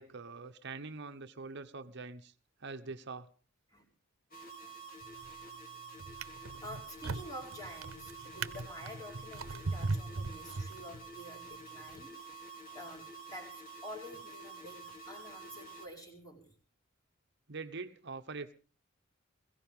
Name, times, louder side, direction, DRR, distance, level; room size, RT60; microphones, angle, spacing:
voice 1, 0.0-2.3 2.6-3.3 17.5-18.5, right 4 dB, 55° right, 1.0 m, -44 dB
sound 1, 4.3-15.9, right 4 dB, 45° left, 3.0 m, -49 dB
Drawer open or close, 5.0-5.5 6.0-11.2 11.9-12.1, right 3 dB, 85° right, 0.9 m, -39 dB
voice 2, 6.4-12.3 12.7-16.6, equal, 20° left, 4.9 m, -49 dB
22.0 x 16.0 x 3.7 m
head